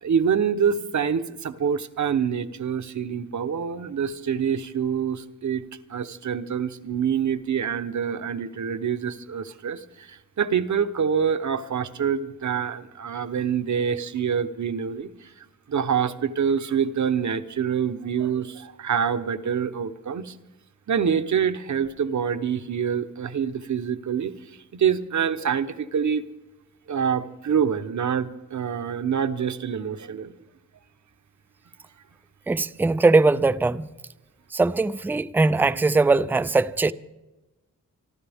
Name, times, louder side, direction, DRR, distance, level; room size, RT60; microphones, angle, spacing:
voice 1, 0.0-5.6 5.9-20.3 20.9-24.3 24.7-26.2 26.9-30.3, right 7 dB, 65° right, 1.0 m, -26 dB
voice 2, 32.5-33.9 34.5-36.9, right 3 dB, 5° right, 0.4 m, -20 dB
27.5 x 12.0 x 3.6 m
wide cardioid pair, 105°, 32 cm